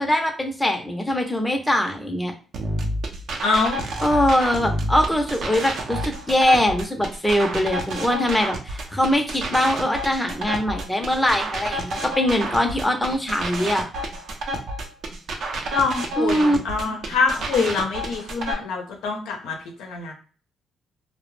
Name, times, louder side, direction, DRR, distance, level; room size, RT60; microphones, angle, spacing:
voice 1, 0.0-2.3 4.0-13.9 16.2-16.6 16.9-17.0, left 1 dB, 10° left, 3 dB, 0.6 m, -22 dB
sound 1, 2.5-18.5, right 1 dB, 65° right, 0.6 m, -30 dB
voice 2, 3.4-3.8 15.7-20.1, left 4 dB, 90° left, 3 dB, 0.6 m, -25 dB
2.3 x 2.1 x 3.1 m, 0.39 s
cardioid pair, 90°, 0 cm